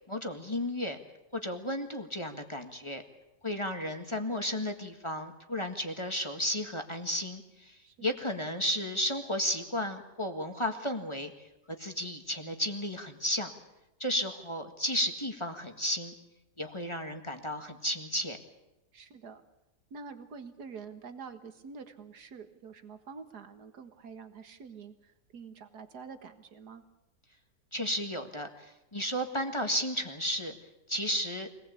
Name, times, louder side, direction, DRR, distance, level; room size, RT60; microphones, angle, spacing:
voice 1, 0.1-1.0 1.3-3.0 3.4-7.4 8.0-11.3 11.8-13.5 14.0-16.1 16.6-18.4 27.7-28.5 28.9-30.5 30.9-31.5, equal, 15° left, 5 dB, 1.7 m, -33 dB
voice 2, 18.9-19.4 19.9-26.8, right 5 dB, 65° right, 9 dB, 2.1 m, -47 dB
24.5 x 19.0 x 8.4 m, 0.96 s
omnidirectional pair, 1.8 m